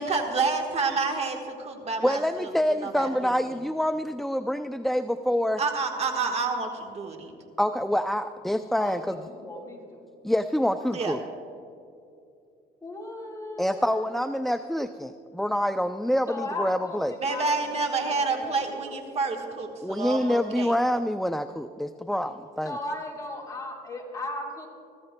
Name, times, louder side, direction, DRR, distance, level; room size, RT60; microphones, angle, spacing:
voice 1, 0.0-2.5 2.8-3.3 5.6-7.3 10.9-11.2 17.2-20.7, right 4 dB, 40° right, 3 dB, 1.4 m, -29 dB
voice 2, 2.0-5.6 7.6-9.2 10.2-11.2 13.6-17.1 19.8-22.7, equal, ahead, 9 dB, 0.3 m, -26 dB
voice 3, 8.8-10.0 12.8-14.3 16.3-19.0 22.6-24.7, left 2 dB, 20° left, -2 dB, 3.9 m, -37 dB
24.0 x 14.5 x 2.2 m, 2.6 s
cardioid pair, 110°, 17 cm